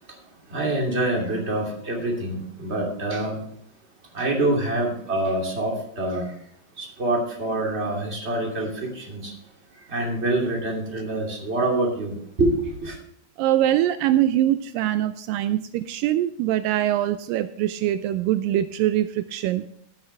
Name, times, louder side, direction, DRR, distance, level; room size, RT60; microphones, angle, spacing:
voice 1, 0.5-3.4 4.1-6.2 6.8-8.7 8.9-9.3 9.9-12.5 12.8-13.0, right 2 dB, 20° right, -1 dB, 2.5 m, -25 dB
voice 2, 13.4-19.7, right 12 dB, 80° right, 11 dB, 2.2 m, -23 dB
15.5 x 9.0 x 3.4 m, 0.68 s
omnidirectional pair, 4.0 m